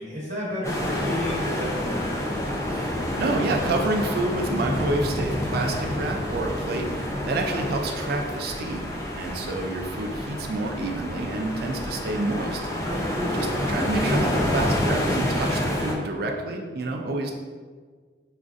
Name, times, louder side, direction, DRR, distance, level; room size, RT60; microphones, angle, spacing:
voice 1, 0.0-2.5 12.8-13.6, left 1 dB, 45° right, -8 dB, 1.0 m, -32 dB
sound 1, 0.6-15.9, left 1 dB, 15° left, 0.5 m, -28 dB
voice 2, 2.7-12.6 13.3-17.3, right 2 dB, 60° right, 2 dB, 0.4 m, -29 dB
5.0 x 2.5 x 2.4 m, 1.5 s
head